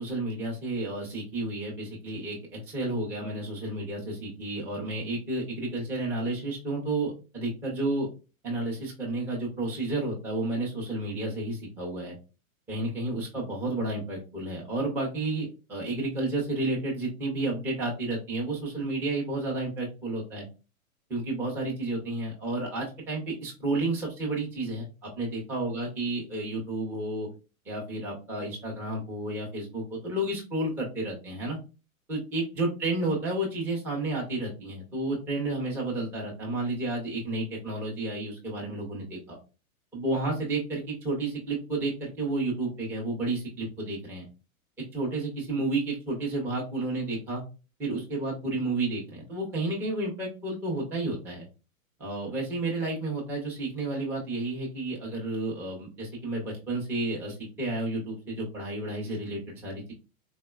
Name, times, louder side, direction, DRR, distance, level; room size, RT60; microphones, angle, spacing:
voice 1, 0.0-8.1 8.4-12.2 12.7-20.5 21.1-27.3 27.7-31.6 32.1-39.4 39.9-44.3 44.9-47.4 47.8-51.5 52.0-59.9, right 2 dB, 5° right, -3 dB, 0.4 m, -31 dB
3.8 x 2.1 x 2.2 m, 0.31 s
hypercardioid pair, 125°, 43 cm